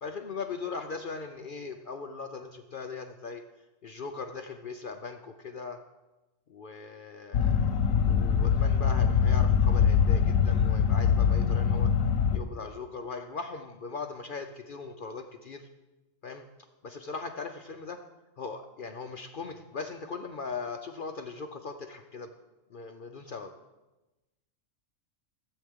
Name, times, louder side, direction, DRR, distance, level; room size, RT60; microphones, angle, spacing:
voice 1, 0.0-3.4 3.8-5.8 6.5-11.9 12.3-15.7 16.2-16.5 16.8-18.0 18.4-22.3 22.7-23.5, left 4 dB, 55° left, 5 dB, 0.6 m, -39 dB
sound 1, 7.3-12.4, left 7 dB, 85° left, 1.1 m, -23 dB
16.0 x 8.0 x 3.6 m, 1.1 s
omnidirectional pair, 1.4 m